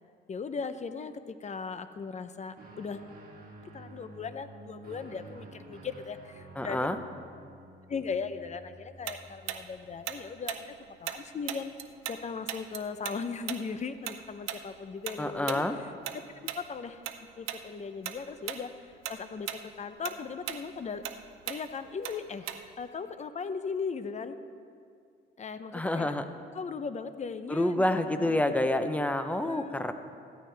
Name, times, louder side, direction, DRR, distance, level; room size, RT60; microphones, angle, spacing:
voice 1, 0.3-3.0 3.7-6.9 7.9-10.7 11.0-11.7 12.1-15.6 16.5-17.0 17.4-18.7 19.1-21.0 21.5-24.4 25.4-26.1 26.5-27.9 28.2-29.1 29.4-29.8, left 5 dB, 35° left, 11 dB, 0.7 m, -38 dB
Guitar, 2.5-10.2, right 2 dB, 50° right, 2.3 m, -51 dB
voice 2, 6.6-7.0 15.2-15.8 25.7-26.2 27.5-29.9, left 1 dB, 5° left, 8 dB, 0.8 m, -28 dB
Tick-tock, 9.1-12.2 12.5-17.2 17.5-17.7 18.0-18.6 18.9-22.9, right 11 dB, 90° right, 0.7 m, -38 dB
16.0 x 12.5 x 3.4 m, 2.3 s
cardioid pair, 90°, 20 cm